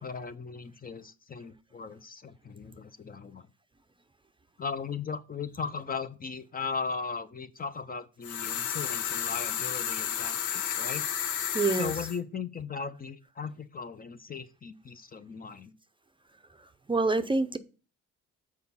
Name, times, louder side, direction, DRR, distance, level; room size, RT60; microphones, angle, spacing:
voice 1, 0.0-3.5 4.6-11.1 11.7-15.7, left 5 dB, 30° left, 0.6 m, -37 dB
sound 1, 8.2-12.2, left 9 dB, 80° left, 0.9 m, -32 dB
voice 2, 11.5-11.9 16.6-17.6, right 3 dB, 15° right, 0.6 m, -27 dB
6.5 x 4.7 x 5.5 m
cardioid pair, 90°, 30 cm